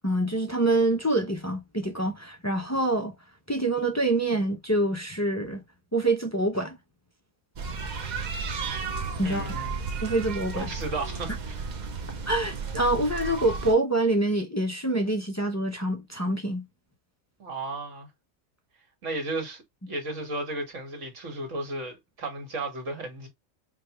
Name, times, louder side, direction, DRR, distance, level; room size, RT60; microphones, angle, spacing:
voice 1, 0.0-3.1 3.5-5.6 5.9-6.8 9.2-9.6 10.0-10.7 12.3-16.6, right 2 dB, 25° left, 0.4 m, -26 dB
sound 1, 7.6-13.7, right 4 dB, 45° right, 0.6 m, -33 dB
voice 2, 9.2-9.7 10.5-11.7 17.4-18.1 19.0-23.3, right 2 dB, 70° right, 1.9 m, -34 dB
5.2 x 2.3 x 2.9 m
omnidirectional pair, 1.3 m